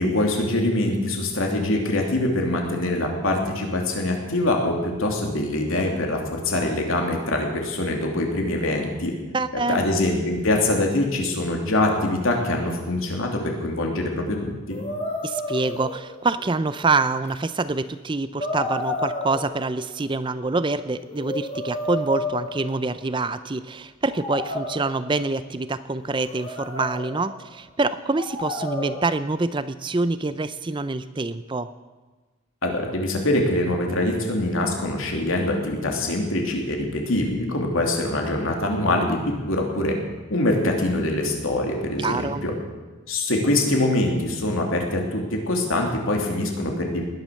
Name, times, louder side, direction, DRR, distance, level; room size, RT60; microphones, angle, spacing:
voice 1, 0.0-9.1 9.5-14.8 32.6-40.0 40.3-42.5 43.1-47.0, left 1 dB, 75° left, 1 dB, 3.0 m, -24 dB
voice 2, 9.3-9.9 15.2-31.7 42.0-42.4, right 3 dB, 20° right, 13 dB, 0.4 m, -26 dB
sound 1, 14.7-16.4 17.2-17.3 18.4-19.9 20.9-23.2 24.1-25.3 26.0-27.3 28.2-29.2, left 1 dB, 30° left, 4.3 m, -31 dB
19.5 x 10.5 x 6.5 m, 1.3 s
head